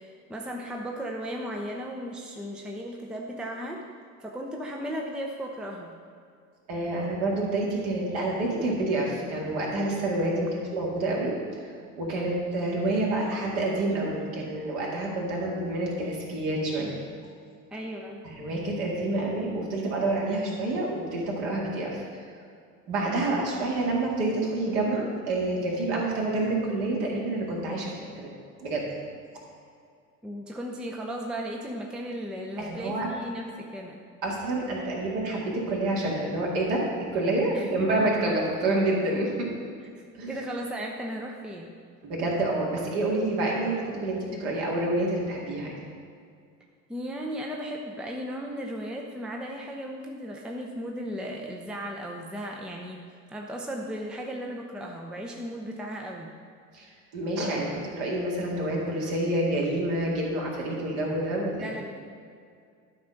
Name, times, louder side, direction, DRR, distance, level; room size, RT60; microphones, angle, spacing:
voice 1, 0.0-3.8 4.2-6.0 17.7-18.2 30.2-34.0 37.5-38.1 39.9-41.7 46.9-53.0 53.3-56.3 61.5-61.8, equal, ahead, 0 dB, 0.7 m, -36 dB
voice 2, 6.7-11.3 12.0-16.9 18.2-22.5 22.9-28.3 28.6-28.9 32.6-33.1 34.2-36.8 37.1-39.5 40.2-40.3 42.0-45.7 56.7-61.7, right 2 dB, 55° right, -3 dB, 2.2 m, -28 dB
11.5 x 4.4 x 5.2 m, 2.2 s
figure-of-eight pair, 65°, 46 cm